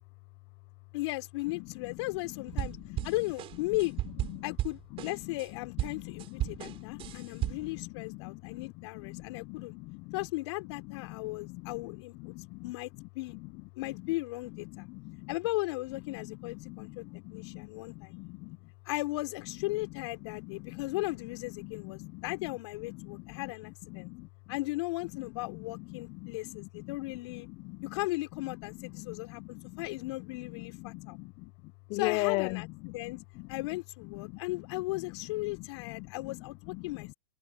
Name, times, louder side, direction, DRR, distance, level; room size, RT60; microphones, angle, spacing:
voice 1, 0.9-2.8 3.0-3.9 4.4-9.7 10.1-12.3 12.6-13.4 13.7-14.9 15.3-17.0 17.3-18.2 18.8-24.1 24.5-27.5 27.8-31.2 31.9-33.2 33.5-37.1, left 21 dB, 55° left, 4.8 m, -36 dB
sound 1, 2.5-5.5 5.8-7.8, right 14 dB, 30° right, 7.2 m, -35 dB
voice 2, 6.0-8.7 9.1-10.1 11.2-11.8 12.2-12.6 14.7-15.3 16.6-18.6 20.4-20.8 21.6-21.7 22.0-22.2 23.0-23.4 23.9-24.3 25.5-25.6 25.9-26.3 26.6-26.7 27.6-27.8 28.9-29.8 30.5-31.5 31.9-32.6 33.0-33.1 33.4-33.5 34.2-34.3 35.5-35.6 36.0-36.1 36.8-36.9, left 24 dB, 40° left, 0.7 m, -40 dB
hypercardioid pair, 125°, 17 cm